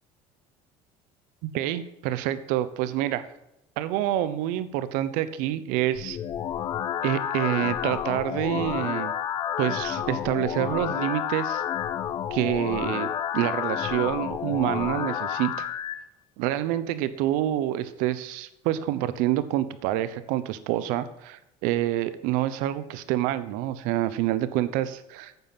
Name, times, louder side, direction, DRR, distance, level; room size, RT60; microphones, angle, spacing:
voice 1, 1.4-3.3 3.8-6.2 7.0-9.1 9.6-11.6 12.3-13.1 13.3-15.7 16.4-25.3, right 13 dB, 75° right, 14 dB, 0.8 m, -27 dB
sound 1, 5.9-15.9, left 9 dB, 40° left, 0.8 m, -30 dB
9.3 x 7.1 x 5.9 m, 0.88 s
cardioid pair, 120°, 14 cm